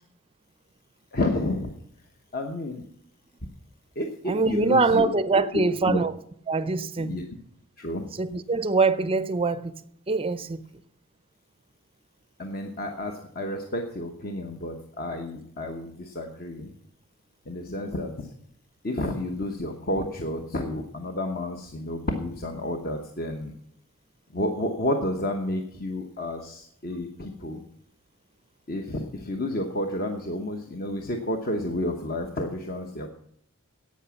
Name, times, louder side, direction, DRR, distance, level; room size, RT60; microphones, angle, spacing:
voice 1, 1.1-1.7 2.3-2.8 3.9-5.1 5.9-6.0 7.0-7.2 7.8-8.1 12.4-16.7 17.5-18.3 18.8-23.5 24.3-27.6 28.7-33.1, left 1 dB, 45° left, 1.0 m, -30 dB
voice 2, 4.3-6.1 6.5-7.2 8.1-9.8 10.1-10.7, right 3 dB, 25° right, 0.5 m, -24 dB
11.0 x 8.5 x 7.1 m
head